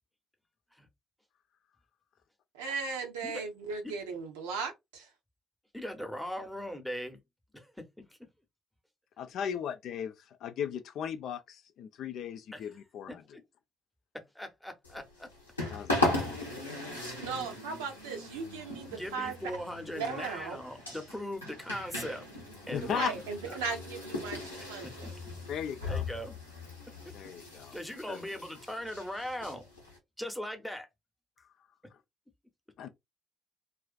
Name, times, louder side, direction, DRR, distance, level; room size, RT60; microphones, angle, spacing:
voice 1, 2.5-5.1 17.2-19.3 19.9-20.6 22.8-25.1, right 5 dB, 75° right, 0.6 m, -37 dB
voice 2, 5.7-7.2 7.5-8.2 12.5-12.6 13.1-13.2 14.1-15.3 17.3-17.4 18.9-22.3 22.7-23.2 24.8-25.1 25.9-26.3 27.0-27.1 27.7-29.7 30.2-30.9, equal, ahead, 0.8 m, -40 dB
voice 3, 9.2-13.2 15.7-16.2 22.7-23.1 25.5-26.0 27.1-27.7 28.1-28.2 32.8-32.9, left 8 dB, 55° left, 0.3 m, -37 dB
sound 1, 14.8-30.0, left 2 dB, 90° left, 0.7 m, -38 dB
2.4 x 2.3 x 2.3 m
figure-of-eight pair, 45°, 0 cm